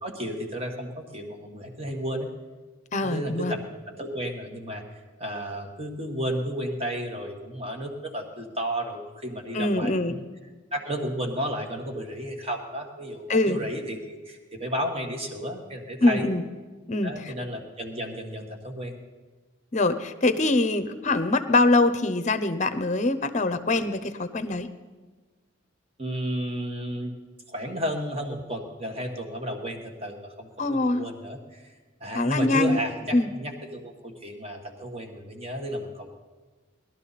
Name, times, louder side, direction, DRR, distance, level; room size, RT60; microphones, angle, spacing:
voice 1, 0.0-2.3 3.0-3.6 3.9-4.8 5.2-10.2 10.7-16.3 17.0-19.0 26.0-27.1 27.5-31.6 32.0-36.1, equal, 30° right, 3 dB, 1.5 m, -33 dB
voice 2, 2.9-3.5 9.5-10.2 13.3-13.6 16.0-16.4 16.9-17.3 19.7-24.7 30.6-31.1 32.1-32.8 33.1-33.3, left 2 dB, 35° left, 10 dB, 0.7 m, -23 dB
19.5 x 12.5 x 4.1 m, 1.4 s
head